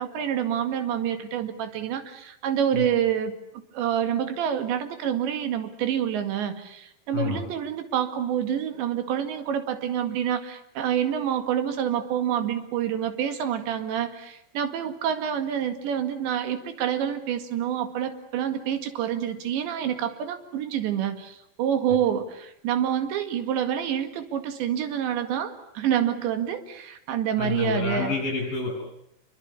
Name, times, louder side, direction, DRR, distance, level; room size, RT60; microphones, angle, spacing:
voice 1, 0.0-3.4 3.7-28.1, right 9 dB, 80° right, 9 dB, 4.4 m, -27 dB
voice 2, 7.1-7.4 27.4-28.7, left 4 dB, 50° left, -1 dB, 7.9 m, -28 dB
28.0 x 23.5 x 8.5 m, 0.79 s
omnidirectional pair, 5.0 m